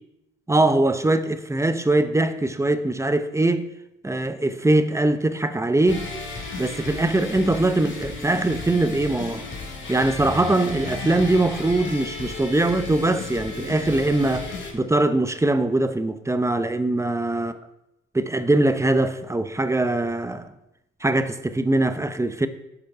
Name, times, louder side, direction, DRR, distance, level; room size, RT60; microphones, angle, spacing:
voice 1, 0.5-3.7 4.0-6.1 6.6-9.5 9.9-17.5 18.1-20.5 21.0-22.5, right 2 dB, 10° right, 0.6 m, -22 dB
sound 1, 5.9-14.7, left 3 dB, 40° left, 2.3 m, -34 dB
10.5 x 5.1 x 4.7 m
cardioid pair, 90°, 30 cm